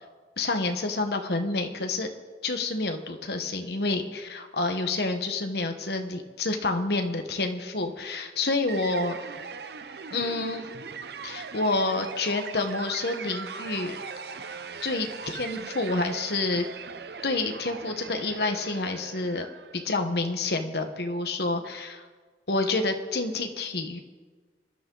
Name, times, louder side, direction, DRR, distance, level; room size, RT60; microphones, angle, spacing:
voice 1, 0.4-2.1 2.4-9.2 10.1-10.7 11.2-14.0 14.8-16.7 17.2-19.5 19.7-22.0 22.5-24.0, left 3 dB, 65° left, 5 dB, 1.3 m, -28 dB
sound 1, 8.7-19.8, right 5 dB, 65° right, 0.7 m, -40 dB
25.0 x 11.0 x 4.0 m, 1.4 s
head